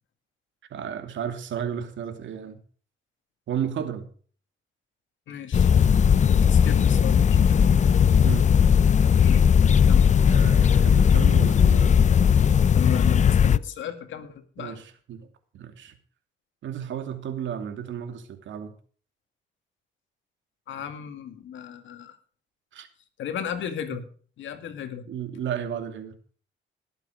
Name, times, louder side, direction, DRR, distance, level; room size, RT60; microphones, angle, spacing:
voice 1, 0.7-2.6 3.5-4.1 6.5-6.6 7.3-7.6 8.2-8.5 10.2-12.0 14.6-15.3 15.5-15.9 16.6-18.7 22.7-22.9 25.1-26.1, right 8 dB, 70° right, 7 dB, 2.7 m, -33 dB
voice 2, 5.3-5.7 6.5-7.7 9.2-9.4 9.9-10.1 12.7-14.8 20.7-22.2 23.2-24.1 24.4-25.1, left 8 dB, 75° left, 9 dB, 2.3 m, -34 dB
sound 1, 5.5-13.6, left 7 dB, 35° left, 0.6 m, -18 dB
19.0 x 8.2 x 5.1 m, 0.44 s
cardioid pair, 90°, 20 cm